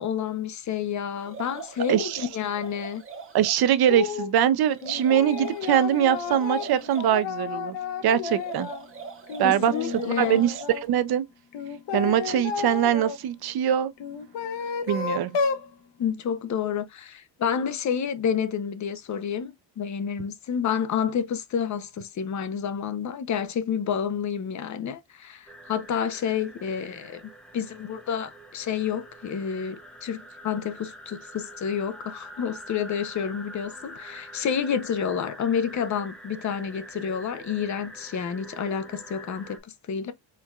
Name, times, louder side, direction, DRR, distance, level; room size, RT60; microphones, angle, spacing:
voice 1, 0.0-3.0 9.4-10.4 16.0-27.2 27.5-40.1, left 7 dB, 40° left, 0.6 m, -29 dB
sound 1, 1.2-3.6 4.7-7.1 8.3-10.8, right 5 dB, 30° right, 1.0 m, -42 dB
voice 2, 1.9-2.3 3.3-7.8 8.0-8.7 9.4-9.7 10.0-10.5 10.8-11.2 11.9-13.9 14.9-15.3, right 10 dB, 55° right, 0.6 m, -22 dB
sound 2, 3.9-4.3 4.8-8.9 9.3-10.8 11.5-13.2 14.0-15.7, left 6 dB, 70° left, 1.0 m, -32 dB
sound 3, 25.5-39.6, right 1 dB, ahead, 0.6 m, -45 dB
4.5 x 3.5 x 2.3 m
cardioid pair, 160°, 44 cm